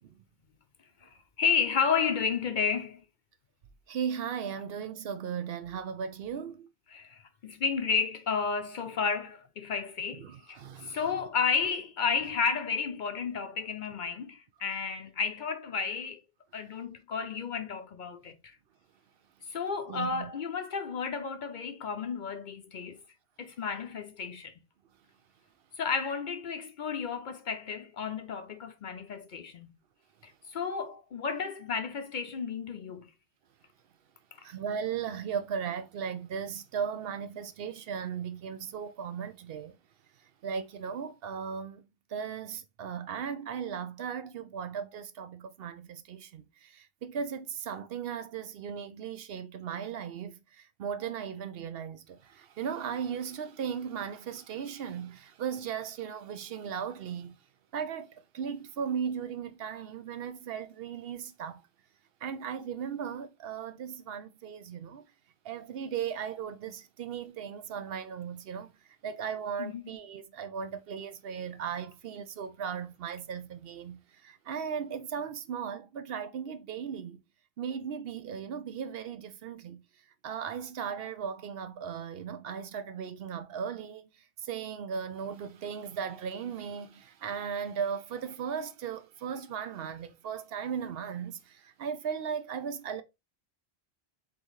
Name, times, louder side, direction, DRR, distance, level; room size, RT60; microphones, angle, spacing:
voice 1, 1.0-3.0 6.9-16.2 16.5-18.6 19.5-23.0 23.4-24.6 25.7-29.7 30.2-33.1 34.4-34.5 69.6-69.9, left 6 dB, 60° left, 0.6 m, -32 dB
voice 2, 3.9-6.7 10.2-11.0 19.9-20.3 34.4-39.7 40.4-41.8 42.1-57.3 57.7-61.6 62.2-65.1 65.4-68.7 69.0-77.2 77.6-79.8 80.2-84.1 84.4-93.0, right 7 dB, 70° right, 0.8 m, -37 dB
4.0 x 3.8 x 2.9 m
omnidirectional pair, 1.1 m